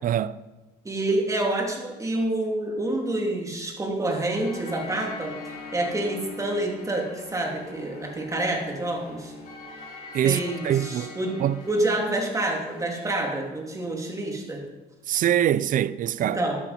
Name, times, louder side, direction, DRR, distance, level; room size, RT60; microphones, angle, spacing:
voice 1, 0.0-0.4 10.1-11.6 15.1-16.4, right 11 dB, 55° right, 0.5 m, -24 dB
voice 2, 0.8-9.3 10.2-11.4 11.7-14.6 16.2-16.6, right 1 dB, 20° right, 3.0 m, -28 dB
sound 1, 4.3-13.1, left 3 dB, 60° left, 5.2 m, -42 dB
13.0 x 11.5 x 4.4 m
cardioid pair, 110°, 17 cm